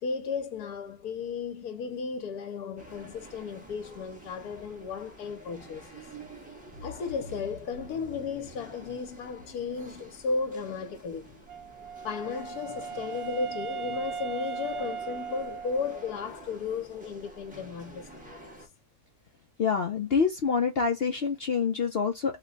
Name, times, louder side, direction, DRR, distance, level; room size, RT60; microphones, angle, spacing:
voice 1, 0.0-6.0 6.7-11.4 12.0-18.6, left 5 dB, 75° left, 1.2 m, -34 dB
sound 1, 2.8-18.7, right 2 dB, 5° right, 0.8 m, -49 dB
Wind instrument woodwind instrument, 11.5-16.3, right 7 dB, 70° right, 0.5 m, -38 dB
voice 2, 19.6-22.4, left 5 dB, 60° left, 0.6 m, -26 dB
3.0 x 2.2 x 3.8 m
omnidirectional pair, 1.7 m